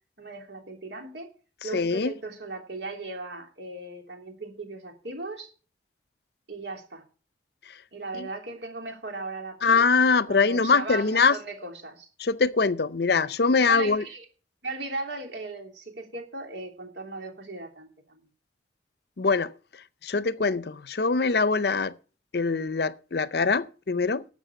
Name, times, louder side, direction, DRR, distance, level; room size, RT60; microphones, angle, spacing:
voice 1, 0.2-1.3 1.6-5.5 6.5-7.0 7.9-9.9 10.3-12.1 13.7-14.3 14.6-18.2, right 2 dB, 70° right, 3.2 m, -37 dB
voice 2, 1.7-2.1 8.2-8.3 9.6-11.4 12.2-14.0 19.2-19.5 20.0-22.0 22.3-24.3, left 4 dB, 60° left, 0.6 m, -23 dB
12.0 x 7.3 x 6.9 m
head